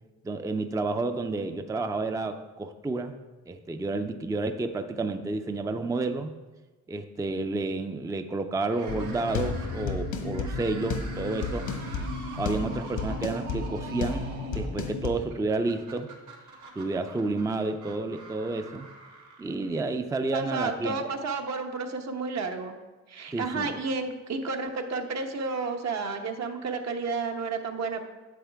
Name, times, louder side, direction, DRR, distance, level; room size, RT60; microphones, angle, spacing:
voice 1, 0.2-3.2 3.5-6.4 6.9-12.0 12.4-16.1 16.8-18.9 19.4-21.0 23.3-23.7, right 3 dB, 10° right, 8 dB, 0.4 m, -30 dB
sound 1, 8.7-20.0, right 3 dB, 85° right, 1.7 m, -46 dB
sound 2, 8.9-15.1, left 4 dB, 85° left, 1.2 m, -33 dB
voice 2, 20.3-22.8 23.1-28.0, right 4 dB, 60° right, 4 dB, 1.1 m, -31 dB
9.4 x 7.2 x 3.4 m, 1.2 s
cardioid pair, 90°, 30 cm